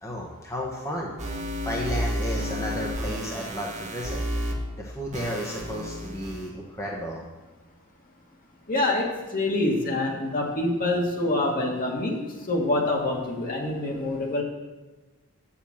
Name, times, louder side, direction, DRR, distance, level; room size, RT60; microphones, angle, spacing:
voice 1, 0.0-1.1 1.6-4.2 4.8-7.2, equal, 15° left, -3 dB, 1.2 m, -33 dB
sound 1, 1.2-4.5 5.1-6.5, equal, 35° right, 1.4 m, -31 dB
voice 2, 8.7-12.2 12.5-14.4, left 2 dB, 40° left, 0 dB, 1.8 m, -26 dB
8.0 x 7.2 x 7.2 m, 1.2 s
head